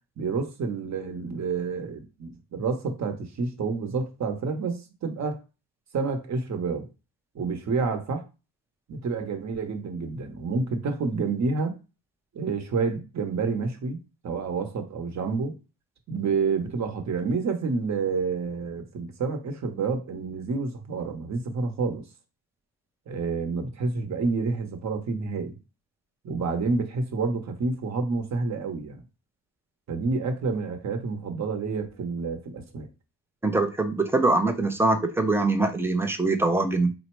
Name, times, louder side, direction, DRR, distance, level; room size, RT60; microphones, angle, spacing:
voice 1, 0.2-5.4 5.9-6.9 7.3-8.2 8.9-11.8 12.3-14.0 14.2-15.6 16.1-22.1 23.1-25.6 26.2-29.0 29.9-32.9, right 4 dB, 35° right, 0.8 m, -29 dB
voice 2, 33.4-36.9, right 2 dB, 5° right, 0.3 m, -23 dB
3.9 x 2.1 x 4.4 m
cardioid pair, 140°, 46 cm